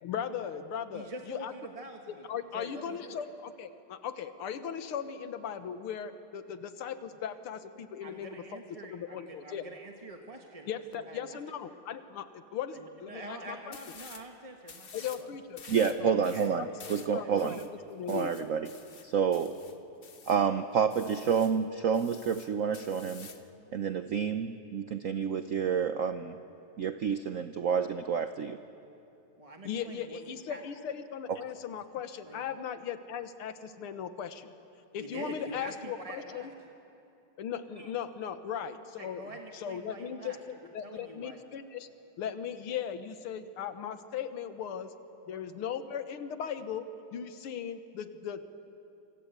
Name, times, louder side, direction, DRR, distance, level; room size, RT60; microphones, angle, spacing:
voice 1, 0.0-1.5 2.3-8.6 8.9-9.6 10.7-13.8 14.9-17.6 17.9-18.5 29.6-34.5 34.9-36.5 37.4-41.9 42.2-44.9 45.3-48.4, left 8 dB, 80° left, 10 dB, 2.1 m, -38 dB
voice 2, 0.9-2.2 2.5-3.2 8.0-11.3 12.8-14.9 15.2-15.3 16.0-16.5 17.1-17.3 29.4-30.2 30.5-30.6 32.3-32.4 34.9-36.5 39.0-40.4 40.8-41.4 45.3-45.4, right 1 dB, 20° right, 2 dB, 1.2 m, -45 dB
sound 1, 13.7-14.3 14.6-15.3 15.6-20.4 20.9-21.6 21.9-23.5, left 5 dB, 40° left, 0.8 m, -50 dB
voice 3, 15.7-17.6 18.1-18.7 19.0-19.5 20.3-23.3 23.7-26.4 26.8-28.6 31.3-31.4, right 7 dB, 80° right, 9 dB, 0.7 m, -29 dB
27.0 x 24.5 x 8.2 m, 2.8 s
omnidirectional pair, 2.4 m